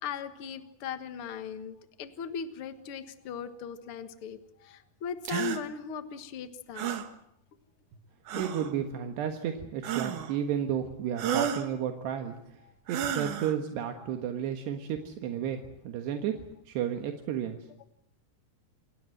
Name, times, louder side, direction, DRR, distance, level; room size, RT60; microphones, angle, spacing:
voice 1, 0.0-7.0 8.3-8.4, left 7 dB, 70° left, 10 dB, 1.3 m, -38 dB
sound 1, 5.3-5.6 6.8-7.1 8.3-8.7 9.8-10.4 11.2-11.7 12.9-13.6, right 9 dB, 60° right, 2.5 m, -32 dB
voice 2, 8.4-12.4 12.9-17.6, right 9 dB, 75° right, 5 dB, 3.6 m, -32 dB
28.5 x 19.0 x 7.8 m, 0.75 s
omnidirectional pair, 4.9 m